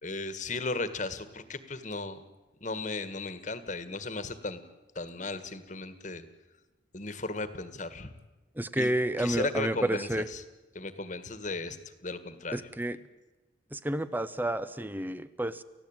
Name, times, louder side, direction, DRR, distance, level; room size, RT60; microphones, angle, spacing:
voice 1, 0.0-2.2 2.6-4.6 5.0-6.3 6.9-8.1 8.8-8.9 9.2-10.4 10.8-11.8 12.0-12.7, left 3 dB, 40° left, 12 dB, 1.7 m, -35 dB
voice 2, 8.6-10.2 12.5-13.0 13.7-15.6, right 1 dB, 10° right, 14 dB, 0.8 m, -30 dB
30.0 x 15.0 x 9.0 m, 1.1 s
head